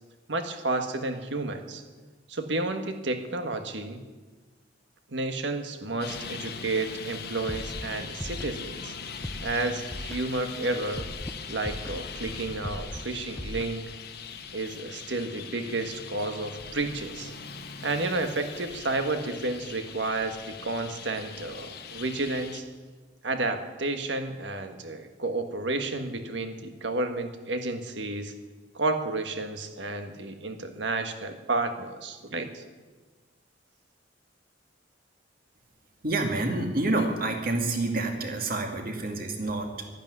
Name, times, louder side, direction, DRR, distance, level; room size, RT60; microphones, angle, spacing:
voice 1, 0.3-1.8 2.3-4.0 5.1-8.9 9.4-11.1 11.5-13.9 14.5-17.3 17.8-22.6 23.2-28.3 28.7-32.6, right 2 dB, 75° right, 7 dB, 1.6 m, -31 dB
Traffic noise roadway noise, 6.0-22.6, left 5 dB, 60° left, 1.4 m, -41 dB
Scratching (performance technique), 7.5-7.8 8.2-8.5 9.2-9.5 9.9-10.2 10.9-11.3 11.6-12.0 12.6-13.0 13.4-13.7, left 1 dB, 10° left, 0.6 m, -37 dB
voice 2, 36.0-39.9, right 2 dB, 50° right, 3 dB, 2.4 m, -28 dB
12.5 x 11.5 x 9.6 m, 1.3 s
head